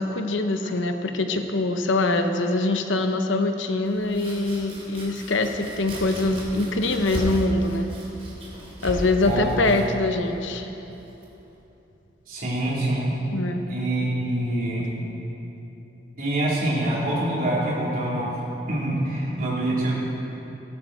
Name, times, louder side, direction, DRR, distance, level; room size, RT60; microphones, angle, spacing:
voice 1, 0.0-7.9 8.8-10.7 13.3-13.6, left 2 dB, 80° left, 6 dB, 0.9 m, -24 dB
Domestic sounds home sounds, 3.8-11.6, equal, 30° right, 3.0 m, -36 dB
voice 2, 12.3-13.1 13.7-14.9 16.2-18.3 18.7-20.0, right 1 dB, 45° right, -7 dB, 3.9 m, -25 dB
17.0 x 12.0 x 4.5 m, 3.0 s
head